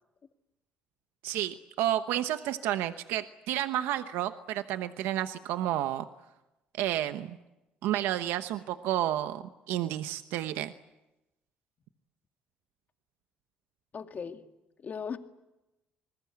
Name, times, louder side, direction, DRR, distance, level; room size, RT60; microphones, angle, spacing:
voice 1, 1.2-6.1 6.8-7.4 7.8-10.7, right 12 dB, 85° right, 10 dB, 1.0 m, -31 dB
voice 2, 13.9-14.4 14.8-15.2, left 6 dB, 45° left, 6 dB, 2.3 m, -37 dB
27.5 x 20.5 x 8.7 m, 0.98 s
supercardioid pair, 70°, 4 cm